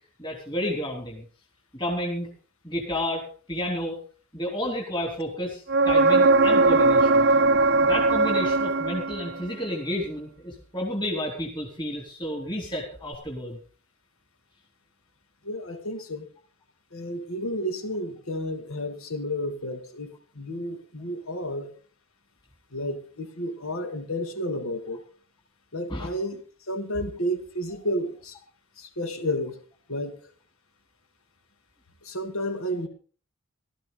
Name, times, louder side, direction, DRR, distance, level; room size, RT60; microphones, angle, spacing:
voice 1, 0.2-1.2 1.7-2.3 2.6-4.0 4.3-7.3 7.8-13.6 25.9-26.1, left 1 dB, 20° left, 1 dB, 3.5 m, -31 dB
sound 1, 5.7-9.5 13.1-13.2, right 3 dB, 50° right, 0.6 m, -20 dB
voice 2, 15.4-16.3 16.9-21.7 22.7-25.0 25.7-28.4 28.8-29.6 29.9-30.2 32.0-32.9, equal, 75° left, 8 dB, 2.5 m, -31 dB
18.0 x 13.5 x 4.0 m, 0.39 s
head